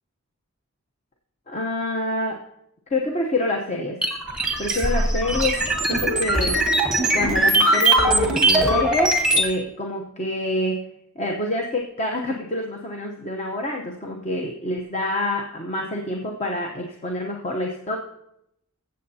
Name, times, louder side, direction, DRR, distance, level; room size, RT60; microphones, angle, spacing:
voice 1, 1.5-2.4 2.9-4.0 4.6-5.6 5.9-6.6 7.1-10.8 11.2-18.0, left 1 dB, 30° left, 1 dB, 0.8 m, -27 dB
sound 1, 4.0-9.5, right 1 dB, 5° right, 1.2 m, -20 dB
21.0 x 7.7 x 2.7 m, 0.80 s
head